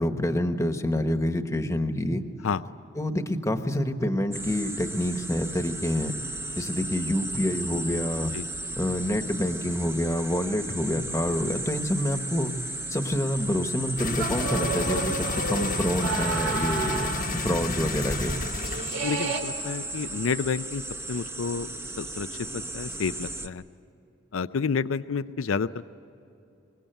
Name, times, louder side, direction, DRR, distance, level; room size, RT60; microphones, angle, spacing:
voice 1, 0.0-2.2 2.9-6.2 6.6-8.3 8.8-12.5 12.9-18.4, left 1 dB, 15° left, 7 dB, 1.2 m, -27 dB
sound 1, 4.3-23.5, right 1 dB, 15° right, 0.9 m, -35 dB
sound 2, 14.0-19.0 19.3-19.4, left 3 dB, 45° left, 1.0 m, -32 dB
sound 3, 14.2-17.4 17.7-17.8 18.0-19.4, right 3 dB, 75° right, 3.3 m, -31 dB
voice 2, 19.0-20.8 21.1-21.7 22.0-22.3 22.5-23.6 24.3-25.9, left 5 dB, 85° left, 14 dB, 0.5 m, -29 dB
24.5 x 21.5 x 9.1 m, 2.9 s
head